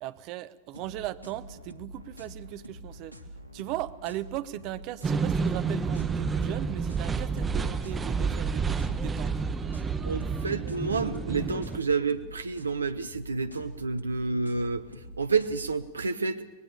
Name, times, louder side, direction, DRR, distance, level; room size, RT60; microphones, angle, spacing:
voice 1, 0.0-3.2 3.5-9.3, right 14 dB, 40° right, 12 dB, 1.0 m, -38 dB
sound 1, 0.7-15.7, equal, 85° left, 1.8 m, -46 dB
sound 2, 5.0-11.8, right 5 dB, 15° right, 1.3 m, -29 dB
voice 2, 10.0-14.8 15.2-16.4, right 4 dB, 75° right, 10 dB, 0.8 m, -29 dB
25.0 x 20.5 x 6.8 m, 1.2 s
figure-of-eight pair, 90°, 0 cm